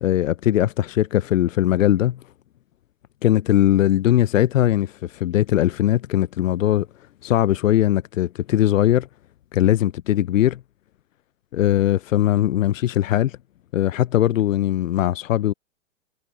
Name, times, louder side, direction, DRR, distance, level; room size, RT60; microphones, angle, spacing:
voice 1, 0.0-2.2 3.2-6.9 7.2-9.1 9.5-10.6 11.5-13.4 13.7-15.5, left 12 dB, 80° left, 0.7 m, -20 dB
hypercardioid pair, 125°, 39 cm